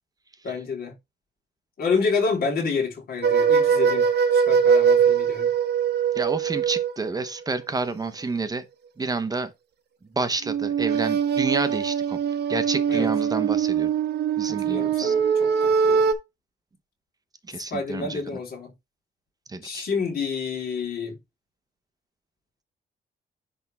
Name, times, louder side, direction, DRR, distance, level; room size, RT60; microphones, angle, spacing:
voice 1, 0.4-0.9 1.8-4.1 4.5-5.5 12.9-13.1 14.5-16.0 17.5-18.7 19.6-21.2, left 5 dB, 60° left, 3.5 m, -28 dB
sound 1, 3.2-7.1 10.4-16.1, right 7 dB, 70° right, 1.1 m, -22 dB
voice 2, 6.1-8.6 9.0-9.5 10.1-12.2 12.5-13.9 14.4-15.1 17.5-18.2 19.5-19.8, right 3 dB, 20° right, 0.9 m, -29 dB
10.5 x 3.6 x 3.4 m
cardioid pair, 150°, 18 cm